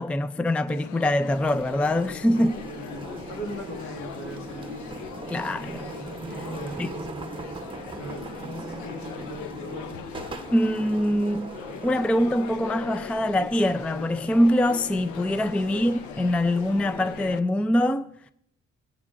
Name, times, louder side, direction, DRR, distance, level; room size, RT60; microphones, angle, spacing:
voice 1, 0.0-2.5 5.3-5.6 6.4-6.5 6.8-6.9 10.5-18.1, left 1 dB, 5° left, 0.4 m, -24 dB
sound 1, 0.7-17.4, left 10 dB, 80° left, 0.5 m, -41 dB
sound 2, 1.3-17.4, right 3 dB, 15° right, 0.9 m, -40 dB
voice 2, 2.3-4.7 5.3-5.5 6.5-6.9 8.0-10.1 15.6-16.0, equal, 60° left, 2.0 m, -40 dB
24.0 x 8.4 x 2.5 m
cardioid pair, 90°, 30 cm